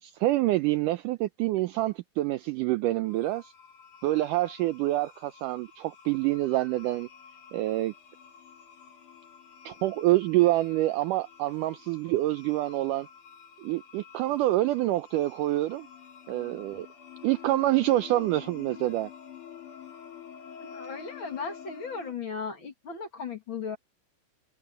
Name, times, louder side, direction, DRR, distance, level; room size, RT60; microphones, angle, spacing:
voice 1, 0.0-3.5 4.0-7.1 7.5-7.9 9.7-13.1 13.6-15.9 16.3-16.9 17.2-19.1, right 16 dB, 75° right, 2.0 m, -26 dB
sound 1, 3.0-22.1, left 8 dB, 55° left, 5.9 m, -49 dB
voice 2, 20.6-23.8, left 5 dB, 40° left, 2.3 m, -36 dB
omnidirectional pair, 4.1 m